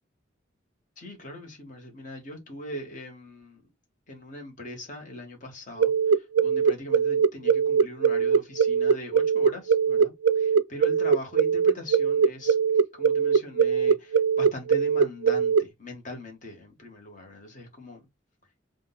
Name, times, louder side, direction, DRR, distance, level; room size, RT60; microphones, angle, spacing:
voice 1, 1.0-3.6 4.1-5.9 6.4-12.5 13.0-18.0, left 1 dB, 40° left, 1.5 m, -41 dB
sound 1, 5.8-15.6, right 6 dB, 85° right, 0.4 m, -21 dB
3.8 x 2.5 x 3.7 m
head